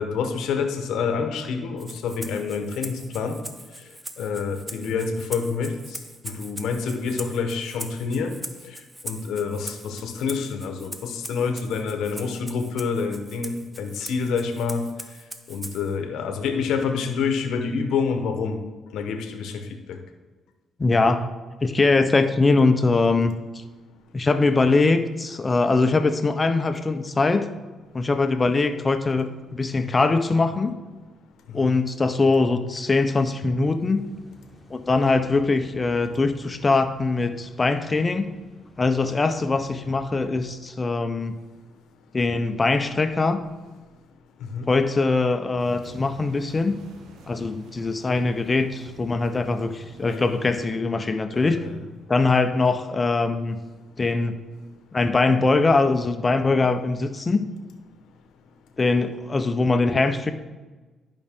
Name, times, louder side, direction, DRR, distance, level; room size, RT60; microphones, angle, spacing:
voice 1, 0.0-3.4 4.2-5.7 6.2-8.3 9.0-14.9 15.5-18.6 18.9-19.5 31.6-31.7 44.5-44.6 50.0-50.4 51.4-51.8, left 5 dB, 80° left, 6 dB, 0.9 m, -27 dB
Rattle (instrument), 1.8-16.0, right 1 dB, 10° right, 0.7 m, -41 dB
voice 2, 20.8-21.3 21.6-23.6 24.1-27.5 27.9-30.8 31.5-34.1 34.7-38.3 38.8-41.4 42.1-43.4 44.7-46.8 47.3-51.6 52.1-53.6 54.0-54.4 54.9-57.5 58.8-60.3, left 3 dB, 25° left, 9 dB, 0.6 m, -22 dB
sound 1, 33.9-40.3, left 1 dB, 5° left, 1.9 m, -50 dB
sound 2, 45.6-50.7, right 3 dB, 80° right, 0.9 m, -48 dB
11.0 x 5.3 x 3.6 m, 1.3 s
cardioid pair, 90°, 0 cm